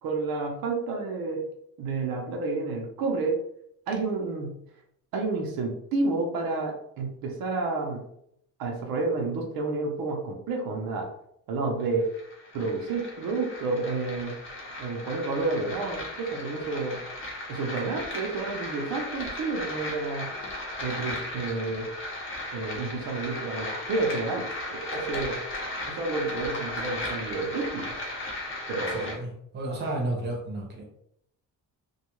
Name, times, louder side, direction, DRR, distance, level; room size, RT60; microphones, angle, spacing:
voice 1, 0.0-1.4 1.8-3.4 3.9-4.6 5.1-8.0 8.6-11.1 11.5-12.1 12.5-14.4 14.8-17.0 17.5-20.3 20.8-21.9 22.5-24.4 24.7-25.4 25.9-27.9 28.7-29.2, right 3 dB, 80° right, 1 dB, 0.6 m, -30 dB
sound 1, 11.8-29.1, left 1 dB, 35° left, 0.7 m, -36 dB
voice 2, 28.9-30.8, right 1 dB, 30° right, -1 dB, 0.7 m, -32 dB
2.3 x 2.2 x 2.9 m, 0.73 s
cardioid pair, 145°, 35 cm